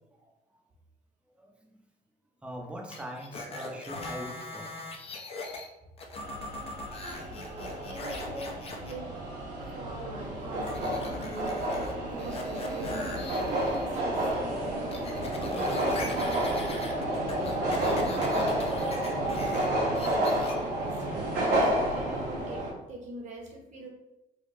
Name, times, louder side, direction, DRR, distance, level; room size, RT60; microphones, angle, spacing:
voice 1, 2.4-4.7 7.2-7.4 9.5-9.6 11.9-12.1 12.4-12.5 17.6-18.0 19.0-19.5, equal, 5° right, 0 dB, 0.7 m, -43 dB
sound 1, 2.9-5.7 6.0-8.9 10.7-11.9 12.2-14.0 14.3-19.7 19.9-20.5 21.6-21.7, left 2 dB, 35° left, 0.6 m, -40 dB
sound 2, 6.2-22.7, right 1 dB, 75° right, 1.3 m, -30 dB
voice 2, 7.0-9.1 9.7-11.6 12.1-13.3 13.8-15.0 15.7-19.5 19.8-23.9, right 1 dB, 45° right, 0 dB, 1.0 m, -43 dB
3.5 x 2.2 x 3.7 m, 0.92 s
cardioid pair, 110°, 17 cm